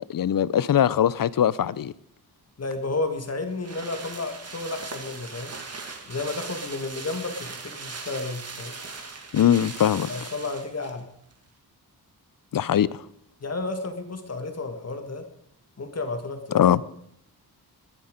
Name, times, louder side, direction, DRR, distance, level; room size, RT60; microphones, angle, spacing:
voice 1, 0.0-1.9 9.3-10.1 12.5-13.0 16.5-16.8, left 10 dB, 60° left, 0.6 m, -21 dB
voice 2, 2.6-5.5 6.1-8.8 10.1-11.1 13.4-15.3 15.8-16.7, left 3 dB, 40° left, 2.0 m, -32 dB
sound 1, 2.8-11.0 11.3-11.4, right 4 dB, 40° right, 2.0 m, -39 dB
21.0 x 9.9 x 5.2 m
wide cardioid pair, 130°, 38 cm